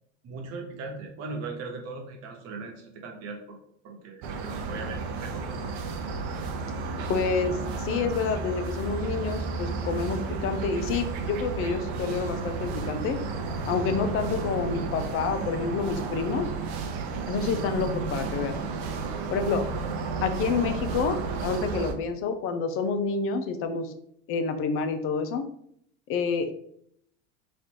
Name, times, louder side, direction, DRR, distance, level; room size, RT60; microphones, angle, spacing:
voice 1, 0.2-3.6 3.8-5.7, right 3 dB, 50° right, 1 dB, 1.2 m, -39 dB
sound 1, 4.2-21.9, right 4 dB, 65° right, 0.7 m, -32 dB
voice 2, 7.1-13.2 13.7-16.5 17.3-18.6 19.3-19.6 20.2-23.9 24.3-25.5 26.1-26.5, left 5 dB, 40° left, 8 dB, 0.6 m, -28 dB
3.2 x 2.5 x 4.4 m, 0.69 s
supercardioid pair, 110°, 33 cm